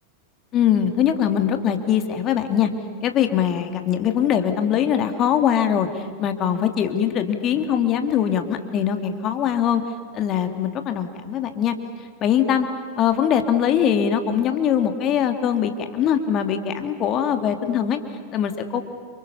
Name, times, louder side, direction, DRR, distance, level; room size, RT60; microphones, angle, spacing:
voice 1, 0.5-2.7 3.0-9.8 10.1-11.7 12.2-12.7 13.0-18.0 18.3-18.8, left 9 dB, 35° left, 7 dB, 2.7 m, -22 dB
29.5 x 28.0 x 7.1 m, 2.1 s
figure-of-eight pair, 90°, 0 cm